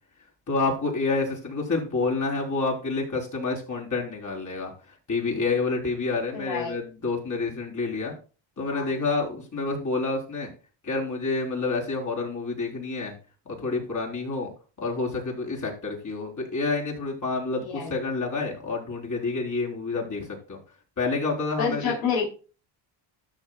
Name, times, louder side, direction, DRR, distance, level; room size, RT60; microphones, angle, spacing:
voice 1, 0.5-4.7 5.1-8.1 8.6-10.5 10.8-13.2 13.5-14.5 14.8-20.6 21.0-21.9, left 3 dB, 35° left, -2 dB, 4.0 m, -28 dB
voice 2, 6.3-6.7 8.7-8.9 17.6-17.9 21.6-22.3, left 6 dB, 80° left, -1 dB, 3.1 m, -28 dB
13.0 x 6.9 x 2.4 m, 0.34 s
cardioid pair, 95°, 48 cm